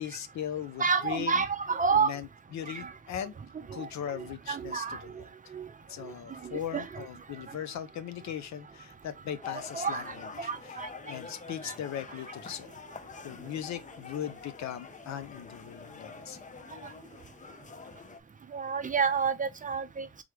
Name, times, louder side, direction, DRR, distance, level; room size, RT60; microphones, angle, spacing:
voice 1, 0.0-1.4 1.9-3.3 3.7-5.3 5.9-10.8 11.1-12.8 13.2-16.4, left 10 dB, 65° left, 0.7 m, -39 dB
voice 2, 0.8-2.1 2.7-2.9 3.8-3.9 4.2-5.0 5.5-5.7 6.4-7.1 9.5-10.1 10.4-10.9 11.6-11.7 18.5-20.1, right 5 dB, 25° right, 0.6 m, -29 dB
sound 1, 9.4-18.2, left 5 dB, 25° left, 0.5 m, -46 dB
3.5 x 3.2 x 3.4 m
cardioid pair, 90°, 30 cm